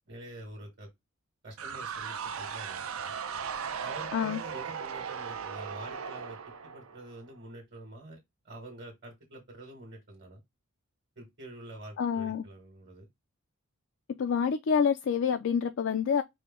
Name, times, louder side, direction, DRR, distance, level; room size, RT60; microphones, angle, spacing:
voice 1, 0.1-0.9 1.4-3.1 3.8-6.4 6.6-8.2 8.4-10.4 11.1-13.1, right 1 dB, 45° right, 1.5 m, -47 dB
sound 1, 1.6-7.3, right 6 dB, 70° right, 0.5 m, -38 dB
voice 2, 12.0-12.4 14.2-16.2, left 6 dB, 55° left, 0.3 m, -27 dB
4.8 x 2.1 x 3.6 m
head